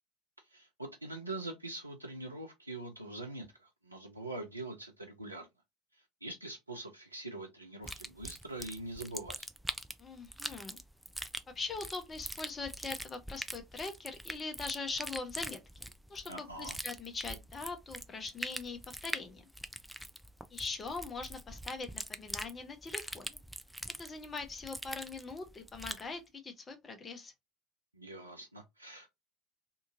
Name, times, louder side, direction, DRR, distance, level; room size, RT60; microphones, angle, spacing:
voice 1, 0.5-5.5 6.2-9.5 16.3-16.8 27.9-29.1, right 2 dB, 90° right, 0.4 m, -43 dB
sound 1, 7.8-26.1, equal, ahead, 0.3 m, -43 dB
voice 2, 10.0-10.8 11.5-19.4 20.5-23.4 24.0-27.3, left 4 dB, 25° left, 0.8 m, -42 dB
2.7 x 2.4 x 2.6 m
figure-of-eight pair, 65°, 0 cm